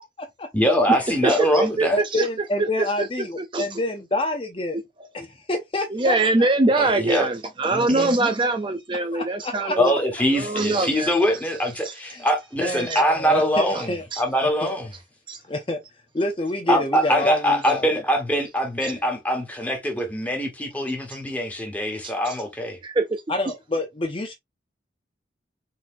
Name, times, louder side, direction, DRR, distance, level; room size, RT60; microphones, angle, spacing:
voice 1, 0.5-2.0 6.8-7.3 7.7-8.3 9.8-13.9 14.2-14.9 16.7-22.8, equal, 10° left, 1.4 m, -23 dB
voice 2, 1.2-2.3 2.6-3.1 3.5-3.8 5.9-9.9 10.3-11.2 11.8-11.9 12.7-13.0 13.7-13.8 14.1-14.2 15.3-15.4 18.8-18.9 22.0-22.4 22.8-23.2, right 2 dB, 25° right, 0.4 m, -23 dB
voice 3, 1.9-4.8 5.1-6.5 9.1-10.0 12.1-12.2 12.6-14.0 14.4-14.7 15.5-15.8 16.1-17.9 23.3-24.3, left 1 dB, 30° left, 0.6 m, -27 dB
4.4 x 4.1 x 2.6 m
head